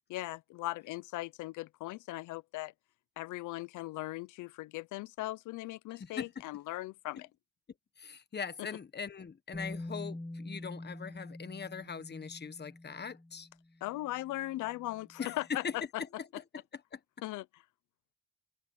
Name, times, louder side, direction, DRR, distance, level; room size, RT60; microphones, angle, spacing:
voice 1, 0.1-2.7 3.2-7.3 13.8-15.8 16.3-16.4 17.2-17.4, left 17 dB, 90° left, 0.7 m, -39 dB
voice 2, 5.9-6.4 8.0-13.5 15.2-17.0, left 6 dB, 35° left, 1.3 m, -41 dB
Bass guitar, 9.5-15.6, left 1 dB, 10° left, 4.2 m, -46 dB
cardioid pair, 90°, 30 cm